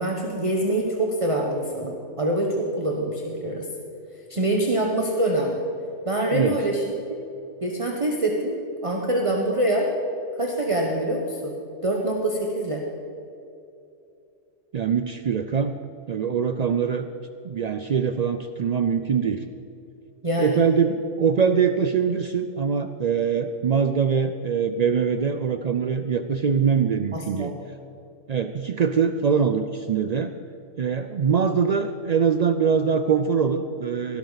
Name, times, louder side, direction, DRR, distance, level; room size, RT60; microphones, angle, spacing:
voice 1, 0.0-3.7 4.3-5.6 6.0-6.8 7.6-9.9 10.3-11.5 11.8-12.8 20.2-20.6 27.1-27.6, right 1 dB, 25° right, 0 dB, 1.1 m, -25 dB
voice 2, 14.7-15.7 16.1-17.1 17.4-19.4 20.4-27.5 28.3-30.3 30.8-34.2, right 6 dB, 90° right, 9 dB, 0.3 m, -23 dB
17.5 x 12.0 x 4.0 m, 2.7 s
omnidirectional pair, 1.3 m